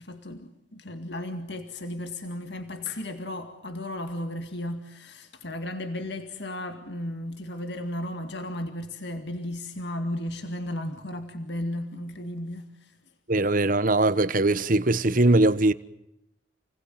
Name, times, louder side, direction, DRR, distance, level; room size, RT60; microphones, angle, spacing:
voice 1, 0.0-13.0, left 1 dB, 60° left, 2.1 m, -34 dB
voice 2, 13.3-15.7, right 2 dB, 45° right, 1.2 m, -21 dB
30.0 x 20.5 x 9.2 m
head